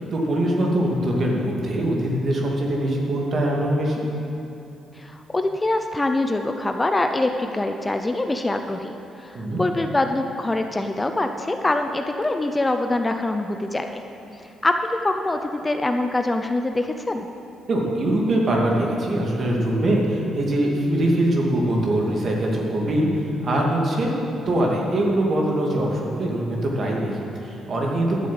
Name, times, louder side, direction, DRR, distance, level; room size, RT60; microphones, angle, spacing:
voice 1, 0.1-4.0 9.3-9.6 17.7-28.3, right 1 dB, 50° right, -1 dB, 2.6 m, -22 dB
voice 2, 5.0-8.9 9.2-13.9 14.4-17.3, left 2 dB, 20° left, 6 dB, 0.6 m, -24 dB
12.0 x 7.7 x 7.8 m, 3.0 s
cardioid pair, 90°, 0 cm